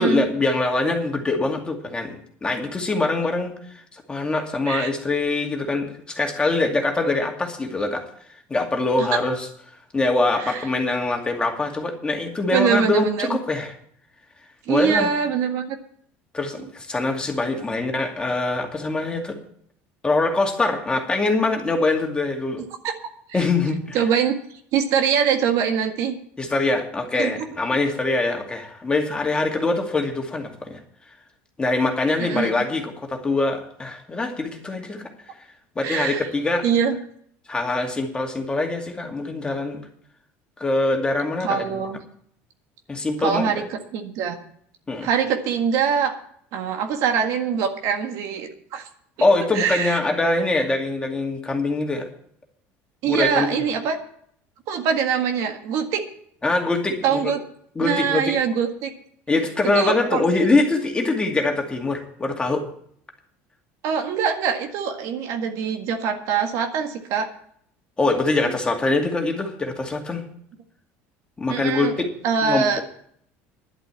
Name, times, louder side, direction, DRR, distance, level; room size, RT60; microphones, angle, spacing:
voice 1, 0.0-3.5 3.9-8.1 8.5-9.5 9.9-13.7 14.7-15.1 16.3-19.4 20.0-22.6 23.3-24.0 26.4-30.8 31.6-35.0 35.8-36.7 37.5-39.8 40.6-41.8 42.9-43.5 44.9-45.1 49.2-52.1 53.0-53.6 56.4-57.3 57.8-58.2 59.3-62.7 68.0-70.2 71.4-72.1 72.4-72.8, left 2 dB, 15° left, 2 dB, 2.3 m, -23 dB
voice 2, 12.5-13.4 14.7-15.8 17.5-17.6 22.8-22.9 23.3-23.4 23.9-24.3 24.7-26.1 27.2-27.3 32.2-32.5 35.8-36.3 36.6-37.0 41.4-42.0 43.2-44.4 45.0-46.1 46.5-48.9 49.2-49.3 49.5-50.0 53.0-54.0 54.7-56.0 57.0-57.4 57.8-58.9 59.7-60.2 63.8-67.3 68.5-68.6 71.5-72.8, right 7 dB, 65° right, 5 dB, 1.8 m, -23 dB
11.5 x 7.9 x 8.4 m, 0.64 s
supercardioid pair, 120°, 6 cm